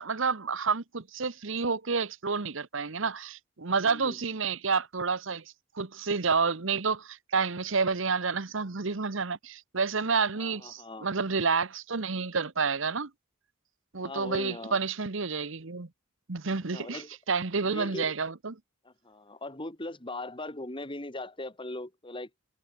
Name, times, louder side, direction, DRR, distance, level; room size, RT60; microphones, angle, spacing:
voice 1, 0.0-5.4 5.7-13.1 13.9-15.9 16.3-18.5, right 5 dB, 65° right, 1.1 m, -29 dB
voice 2, 3.8-4.2 10.4-11.1 14.0-14.8 16.7-17.1 17.6-18.1 18.8-22.3, left 2 dB, 25° left, 2.6 m, -39 dB
head